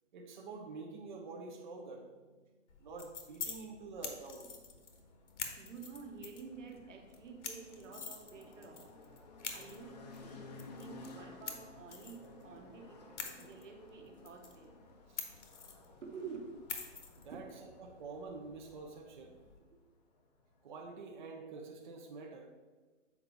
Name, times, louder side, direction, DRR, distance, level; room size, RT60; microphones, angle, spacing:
voice 1, 0.1-2.4 2.8-4.5 11.2-11.3 15.1-15.2 17.2-17.5 17.8-19.4 20.6-22.5, right 3 dB, 40° right, 1 dB, 0.7 m, -47 dB
sound 1, 2.7-19.6, left 5 dB, 70° left, 1.2 m, -48 dB
sound 2, 3.6-21.1, left 3 dB, 35° left, 0.6 m, -56 dB
voice 2, 5.6-8.9 9.5-14.8 16.0-16.6 17.3-17.4, right 5 dB, 80° right, 3 dB, 1.3 m, -50 dB
7.4 x 4.6 x 3.9 m, 1.3 s
hypercardioid pair, 170°, 37 cm